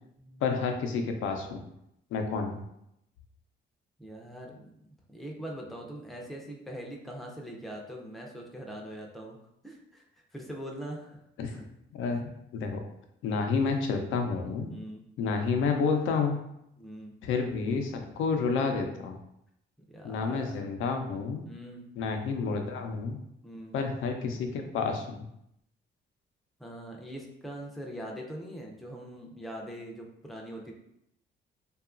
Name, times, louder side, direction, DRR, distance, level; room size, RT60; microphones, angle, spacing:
voice 1, 0.4-1.6 2.1-2.6 11.4-11.5 11.9-12.8 13.2-14.7 15.2-16.4 17.2-19.2 20.0-21.5 22.0-23.2 23.7-25.3, left 4 dB, 80° left, 4 dB, 0.5 m, -30 dB
voice 2, 4.0-9.4 9.6-10.0 10.3-11.2 11.5-11.6 14.7-15.0 16.8-17.2 19.9-20.7 21.5-21.9 23.4-23.8 26.6-30.7, equal, ahead, -1 dB, 0.5 m, -42 dB
2.8 x 2.3 x 2.4 m, 0.79 s
cardioid pair, 90°, 20 cm